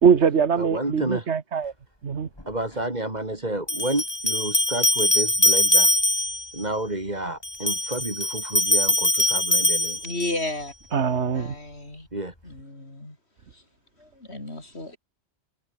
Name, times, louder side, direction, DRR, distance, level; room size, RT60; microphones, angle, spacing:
voice 1, 0.0-1.7 2.0-2.3 10.9-11.6, right 6 dB, 80° right, 1.7 m, -22 dB
voice 2, 0.6-1.2 2.5-5.9 6.5-10.0 12.1-12.3, right 1 dB, 40° right, 3.4 m, -30 dB
sound 1, 2.4-2.5 3.7-6.5 7.4-10.5, left 1 dB, 20° left, 3.7 m, -22 dB
voice 3, 10.0-10.7 11.3-12.1 12.4-13.2 13.5-13.6 14.0-15.0, left 2 dB, 70° left, 5.6 m, -33 dB
omnidirectional pair, 1.1 m